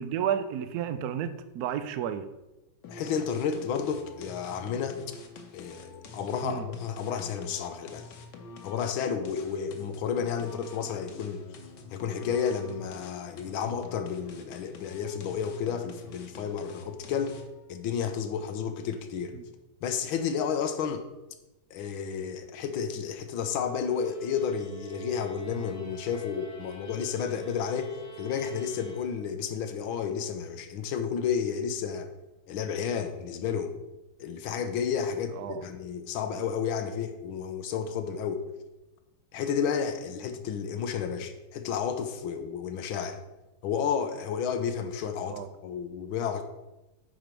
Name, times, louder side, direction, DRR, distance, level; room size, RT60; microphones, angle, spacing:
voice 1, 0.0-2.3 6.4-6.7 19.3-19.4 35.4-35.6 45.3-45.5, right 9 dB, 75° right, 0.9 m, -32 dB
sound 1, 2.8-17.6, left 3 dB, 65° left, 1.5 m, -47 dB
voice 2, 2.9-5.0 5.5-8.1 8.6-11.4 11.9-17.4 17.7-19.3 19.8-21.1 21.7-32.1 32.5-33.7 34.2-38.4 39.3-43.2 43.6-46.4, left 7 dB, 90° left, 1.6 m, -31 dB
sound 2, 23.9-29.6, right 4 dB, 30° left, 0.9 m, -48 dB
9.2 x 5.0 x 4.5 m
omnidirectional pair, 2.2 m